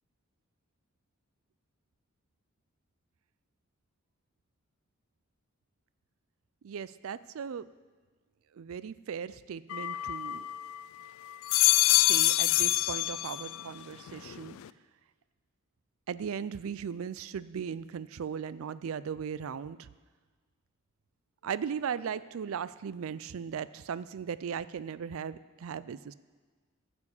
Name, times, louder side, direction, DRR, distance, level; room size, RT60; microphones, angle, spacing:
voice 1, 6.6-7.7 8.6-10.5 12.0-14.6 16.1-19.9 21.4-26.1, right 7 dB, 70° right, 17 dB, 0.4 m, -37 dB
sound 1, 9.7-10.8 11.3-13.7 14.1-14.7, left 17 dB, 70° left, 0.3 m, -26 dB
11.0 x 7.1 x 7.1 m, 1.4 s
head